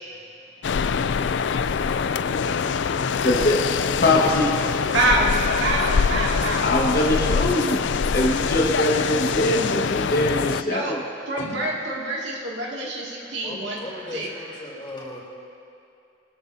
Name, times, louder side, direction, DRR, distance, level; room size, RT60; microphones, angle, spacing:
sound 1, 0.6-10.6, left 6 dB, 75° left, 0.4 m, -24 dB
voice 1, 1.5-3.6 4.0-4.9 6.6-7.8 8.1-11.0, left 1 dB, 55° left, -2 dB, 1.6 m, -23 dB
voice 2, 4.9-6.7 10.6-11.0 11.3-13.8 14.1-14.3, right 1 dB, 75° right, -3 dB, 2.3 m, -26 dB
voice 3, 13.4-15.2, left 1 dB, 25° left, -5 dB, 3.7 m, -37 dB
23.5 x 13.5 x 2.8 m, 2.5 s
head